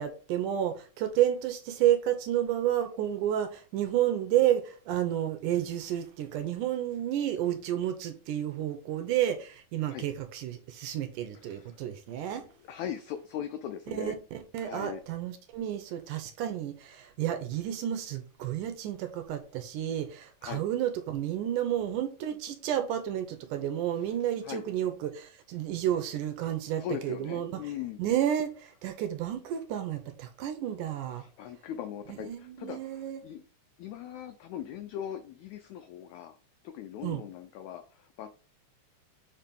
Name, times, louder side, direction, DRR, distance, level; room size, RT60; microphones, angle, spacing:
voice 1, 0.0-12.5 13.9-27.5 28.0-31.2 32.2-33.2 37.0-37.2, right 11 dB, 75° right, 2.1 m, -31 dB
voice 2, 11.3-11.8 12.1-12.2 12.6-14.2 14.6-15.0 20.4-20.6 23.9-24.1 24.4-24.6 26.8-28.0 31.1-33.4 33.8-36.4 36.6-38.3, left 10 dB, 90° left, 1.6 m, -40 dB
7.4 x 2.9 x 5.2 m
omnidirectional pair, 4.0 m